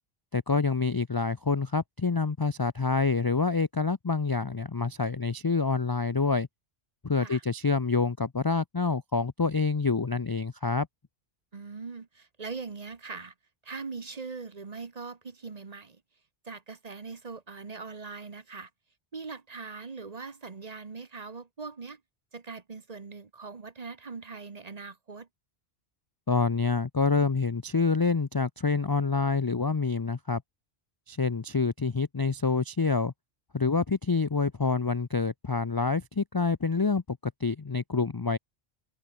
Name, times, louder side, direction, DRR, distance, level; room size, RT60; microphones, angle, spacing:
voice 1, 0.3-6.5 7.0-10.9 26.3-30.4 31.1-33.1 33.5-38.4, left 4 dB, 30° left, 0.4 m, -27 dB
voice 2, 11.5-13.3 13.6-16.0 16.4-18.7 19.1-22.0 22.3-25.3, right 4 dB, 40° right, 1.1 m, -41 dB
omnidirectional pair, 1.1 m